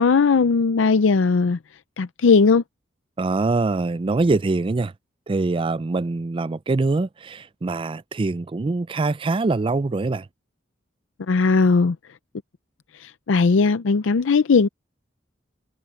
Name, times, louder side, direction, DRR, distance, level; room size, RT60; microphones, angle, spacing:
voice 1, 0.0-1.6 2.0-2.6 11.3-12.0 12.9-14.7, left 4 dB, 85° left, 0.5 m, -18 dB
voice 2, 3.2-4.9 5.3-10.3, right 3 dB, 25° right, 0.4 m, -23 dB
head